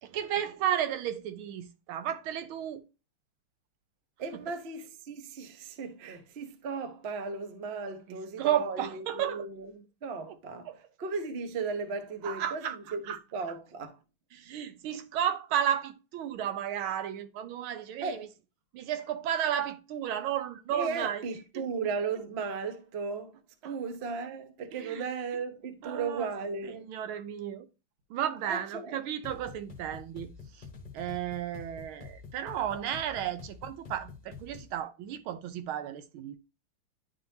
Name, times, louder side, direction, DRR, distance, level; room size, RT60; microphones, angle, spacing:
voice 1, 0.0-2.8 8.1-9.5 10.3-10.4 10.6-10.8 12.2-13.2 14.3-18.3 18.7-21.2 23.6-23.8 24.8-25.0 25.8-26.3 26.6-27.7 28.1-30.7 30.9-36.4, right 10 dB, 80° right, 1.5 m, -33 dB
voice 2, 4.2-10.7 11.0-14.0 18.0-18.3 20.7-23.4 23.6-26.9 28.5-29.0, right 4 dB, 55° right, 0.7 m, -36 dB
sound 1, 29.2-34.8, left 5 dB, 30° left, 1.1 m, -48 dB
10.5 x 3.8 x 2.7 m
omnidirectional pair, 2.3 m